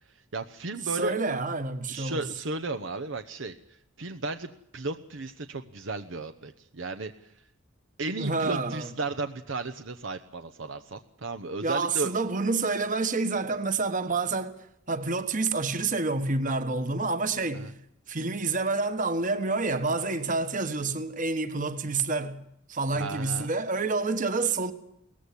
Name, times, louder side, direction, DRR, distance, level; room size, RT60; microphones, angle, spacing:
voice 1, 0.3-1.2 1.9-7.3 8.0-12.1 17.5-17.7 22.9-23.5, right 3 dB, 65° right, 0.9 m, -34 dB
voice 2, 0.9-2.3 8.1-8.9 11.6-14.6 14.9-17.7 18.1-22.4 22.7-24.7, right 3 dB, 40° right, 1.4 m, -28 dB
18.5 x 15.0 x 9.7 m
head